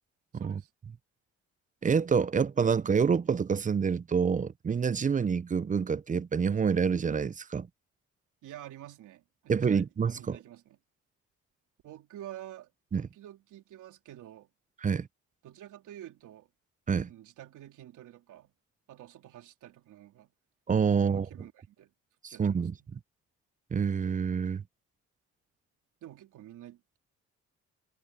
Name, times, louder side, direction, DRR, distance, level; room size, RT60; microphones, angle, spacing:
voice 1, 0.3-0.7 8.4-9.9 10.1-10.8 11.8-14.5 15.4-16.5 17.0-18.5 18.9-20.3 20.9-21.9 22.3-22.9 26.0-27.0, right 12 dB, 85° right, 3.4 m, -49 dB
voice 2, 1.8-7.7 9.5-10.4 12.9-13.1 14.8-15.1 16.9-17.1 20.7-21.3 22.2-23.0 23.7-24.6, right 6 dB, 25° right, 0.5 m, -27 dB
cardioid pair, 90°, 30 cm